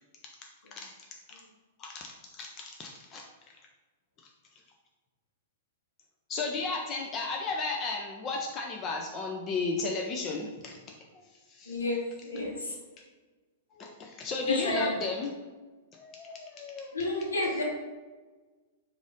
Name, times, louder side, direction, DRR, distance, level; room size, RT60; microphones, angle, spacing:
voice 1, 1.8-3.2 6.3-10.8 11.5-11.8 13.7-15.3 15.9-17.0, left 3 dB, 25° left, 1 dB, 0.5 m, -34 dB
voice 2, 11.7-12.8 14.5-14.9 16.9-17.6, left 2 dB, 70° left, -1 dB, 1.0 m, -30 dB
4.9 x 2.6 x 3.7 m, 1.3 s
figure-of-eight pair, 100°, 0 cm